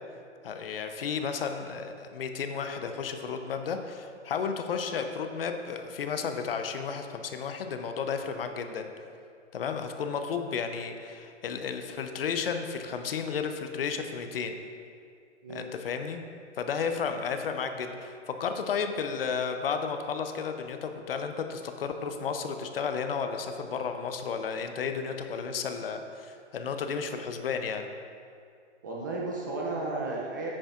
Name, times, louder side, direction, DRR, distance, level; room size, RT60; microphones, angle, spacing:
voice 1, 0.4-8.9 9.5-14.5 15.5-16.2 16.6-27.8, left 6 dB, 50° left, 7 dB, 0.7 m, -33 dB
voice 2, 28.8-30.5, right 2 dB, 15° right, -3 dB, 0.5 m, -33 dB
10.0 x 8.8 x 2.5 m, 2.3 s
hypercardioid pair, 150°, 36 cm